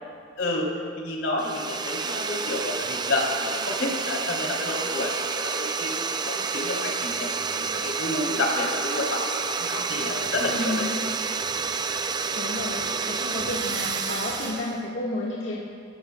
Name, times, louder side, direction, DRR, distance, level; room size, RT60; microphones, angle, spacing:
voice 1, 0.4-0.7 1.0-5.9 6.2-10.9, left 2 dB, 90° left, -2 dB, 3.4 m, -29 dB
sound 1, 1.4-14.8, right 5 dB, 25° right, 0.4 m, -29 dB
sound 2, 9.3-14.5, right 4 dB, 85° right, 2.8 m, -40 dB
voice 2, 10.5-11.0 12.3-15.6, left 2 dB, 70° left, -6 dB, 1.8 m, -31 dB
26.5 x 14.5 x 2.3 m, 2.3 s
head